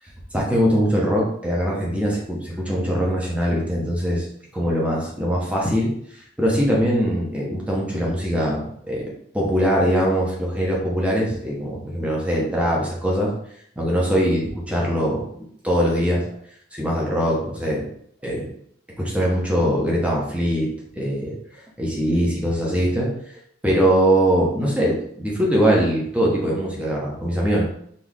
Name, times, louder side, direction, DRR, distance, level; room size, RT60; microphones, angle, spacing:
voice 1, 0.3-4.2 4.5-5.9 6.4-13.3 13.8-16.2 16.7-17.8 18.2-18.5 19.0-20.7 21.0-21.4 21.8-23.1 23.6-27.6, equal, 5° right, -4 dB, 1.2 m, -22 dB
4.2 x 3.1 x 3.7 m, 0.67 s
head